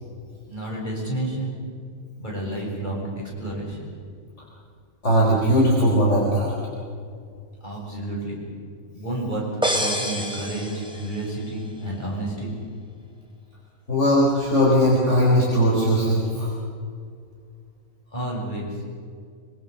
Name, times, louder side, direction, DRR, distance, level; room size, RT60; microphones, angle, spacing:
voice 1, 0.5-1.6 2.2-3.9 7.6-8.4 8.9-9.5 9.7-12.6 18.1-18.8, right 1 dB, 30° left, -3 dB, 7.4 m, -30 dB
voice 2, 5.0-6.5 13.9-16.5, equal, 50° left, -4 dB, 4.7 m, -19 dB
sound 1, 9.6-11.4, equal, 5° right, 2.8 m, -27 dB
25.0 x 24.5 x 6.8 m, 2.2 s
omnidirectional pair, 1.6 m